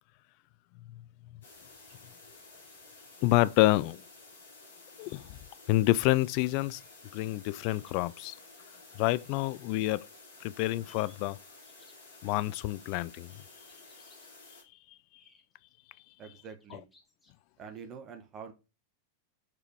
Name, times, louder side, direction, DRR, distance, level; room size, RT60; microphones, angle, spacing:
sound 1, 1.4-14.6, left 3 dB, 65° left, 3.5 m, -53 dB
voice 1, 3.2-4.0 5.0-5.4 5.7-6.8 7.1-8.4 9.0-10.1 10.4-11.4 12.2-13.4, left 18 dB, 45° left, 0.3 m, -28 dB
sound 2, 7.6-8.4 10.5-11.2 11.6-12.2 13.7-14.3 15.2-15.7 16.6-17.5, left 2 dB, 10° left, 2.5 m, -63 dB
voice 2, 16.2-16.9 17.6-18.5, right 6 dB, 30° right, 1.3 m, -45 dB
6.7 x 4.9 x 4.8 m
figure-of-eight pair, 90°, 0 cm